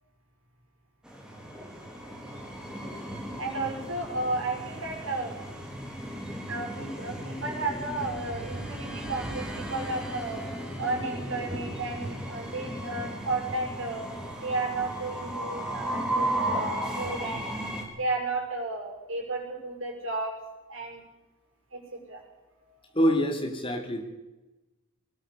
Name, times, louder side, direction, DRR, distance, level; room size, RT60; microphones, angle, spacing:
Train, 1.0-17.8, right 1 dB, 5° right, 3.7 m, -35 dB
voice 1, 3.4-5.3 6.5-10.5 10.8-14.1 14.4-17.5 18.0-20.3 20.7-21.0 21.7-22.2 22.7-22.8, right 2 dB, 65° right, 1 dB, 6.1 m, -33 dB
voice 2, 22.9-24.0, equal, 25° left, 3 dB, 3.2 m, -26 dB
20.5 x 19.0 x 7.0 m, 1.1 s
head